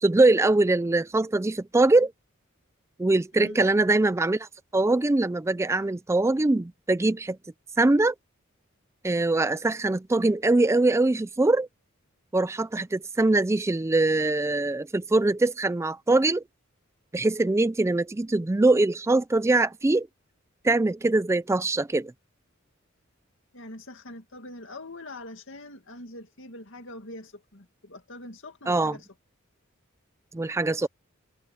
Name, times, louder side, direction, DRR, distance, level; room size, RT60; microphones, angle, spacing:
voice 1, 0.0-2.1 3.0-4.5 4.7-7.4 7.8-8.1 9.0-11.7 12.3-16.4 17.1-20.1 20.6-22.1 28.7-29.0 30.3-30.9, right 2 dB, 15° right, 0.3 m, -22 dB
voice 2, 23.5-29.1 30.6-30.9, left 1 dB, 65° left, 2.3 m, -43 dB
head